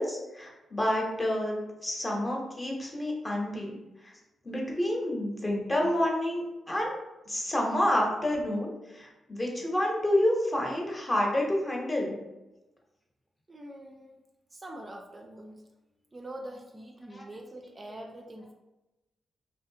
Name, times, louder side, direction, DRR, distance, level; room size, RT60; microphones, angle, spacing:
voice 1, 0.0-3.7 4.0-4.1 4.4-7.0 7.3-12.2 17.1-17.2, left 1 dB, 25° left, -1 dB, 0.8 m, -29 dB
voice 2, 13.5-14.2 14.5-15.6 16.1-18.5, right 1 dB, 30° right, 2 dB, 0.3 m, -44 dB
2.7 x 2.3 x 2.7 m, 1.0 s
cardioid pair, 60°, 0 cm